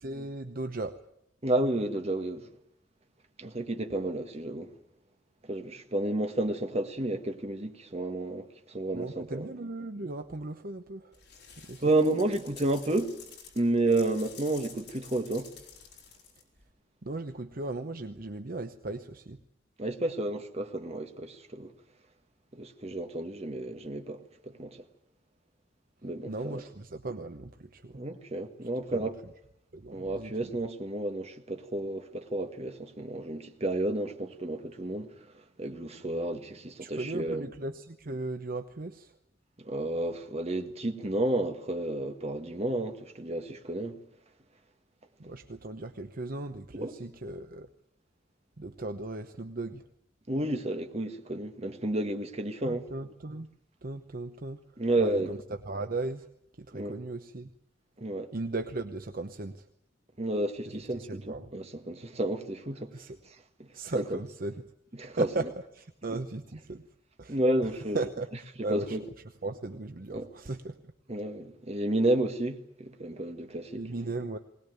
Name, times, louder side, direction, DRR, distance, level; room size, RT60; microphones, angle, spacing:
voice 1, 0.0-1.0 8.9-11.2 11.6-11.8 17.0-19.4 26.3-28.0 28.6-29.1 29.7-30.5 36.8-39.2 45.2-47.7 48.6-49.9 52.6-53.5 53.8-56.3 56.6-57.5 58.3-59.7 60.6-61.5 62.9-63.2 63.7-64.6 65.1-66.9 67.2-69.0 69.4-70.9 73.8-74.4, right 2 dB, 50° right, 0.9 m, -37 dB
voice 2, 1.4-2.5 3.4-4.7 5.4-9.5 11.8-13.2 13.6-15.5 19.8-21.7 22.5-24.8 26.0-26.6 27.9-29.2 29.9-35.1 35.6-37.5 39.6-44.0 46.8-46.9 50.3-52.9 54.8-55.3 56.7-56.9 58.0-58.3 60.2-62.9 63.6-64.2 65.0-65.3 67.3-68.0 68.7-69.0 70.1-70.3 71.1-73.8, right 1 dB, 35° right, 1.7 m, -31 dB
sound 1, 11.1-16.7, left 6 dB, 65° left, 5.5 m, -50 dB
21.0 x 19.5 x 9.3 m
head